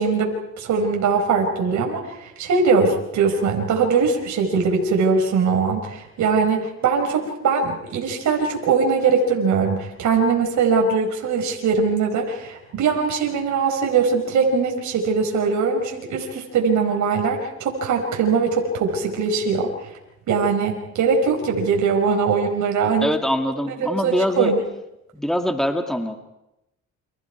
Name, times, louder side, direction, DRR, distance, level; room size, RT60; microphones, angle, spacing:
voice 1, 0.0-19.7 20.3-23.1 23.7-24.6, right 5 dB, 70° right, 1 dB, 4.6 m, -21 dB
voice 2, 23.0-24.5 25.1-26.2, equal, ahead, 5 dB, 2.4 m, -23 dB
29.5 x 26.0 x 4.7 m, 0.89 s
cardioid pair, 90°, 30 cm